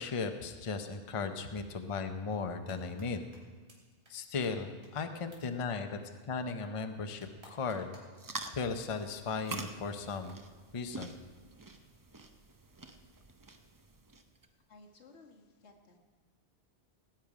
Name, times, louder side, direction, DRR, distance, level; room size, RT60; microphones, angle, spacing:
voice 1, 0.0-3.3 4.1-6.0 6.2-8.0 8.5-10.3 10.7-11.1, left 4 dB, 35° left, 7 dB, 0.7 m, -36 dB
sound 1, 2.7-3.1 3.3-3.4 3.7-3.8 4.1-4.2 4.4-4.5 4.8-4.9 5.3-5.4 7.2-8.2, right 1 dB, 65° right, 3.2 m, -57 dB
sound 2, 8.1-14.5, right 3 dB, 25° right, 0.5 m, -46 dB
voice 2, 14.7-16.0, left 3 dB, 75° left, 1 dB, 1.8 m, -57 dB
18.0 x 9.0 x 4.9 m, 1.5 s
omnidirectional pair, 1.2 m